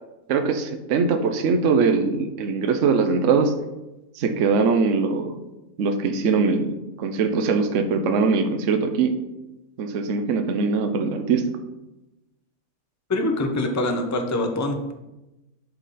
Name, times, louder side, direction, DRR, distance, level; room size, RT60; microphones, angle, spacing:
voice 1, 0.3-3.5 4.1-5.4 5.8-9.1 9.8-11.4, right 4 dB, 60° right, 6 dB, 1.0 m, -22 dB
voice 2, 13.1-14.9, left 2 dB, 25° left, 4 dB, 0.4 m, -24 dB
11.0 x 3.8 x 4.1 m, 0.99 s
omnidirectional pair, 1.6 m